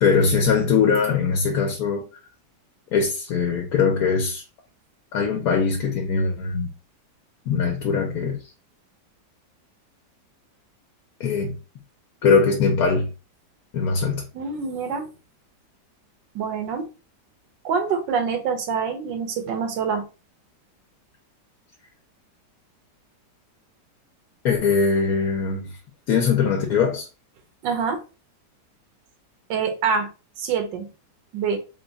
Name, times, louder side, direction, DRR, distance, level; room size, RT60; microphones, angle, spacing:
voice 1, 0.0-2.1 2.9-4.4 5.1-6.7 7.5-8.4 11.2-11.6 12.2-13.1 13.7-14.2 24.4-25.7 26.1-27.1, left 5 dB, 65° left, 1.1 m, -21 dB
voice 2, 14.3-15.1 16.3-16.9 17.6-20.1 27.6-28.0 29.5-30.1 30.4-30.9 31.3-31.6, right 6 dB, 90° right, 1.5 m, -25 dB
3.7 x 2.3 x 3.9 m
omnidirectional pair, 1.9 m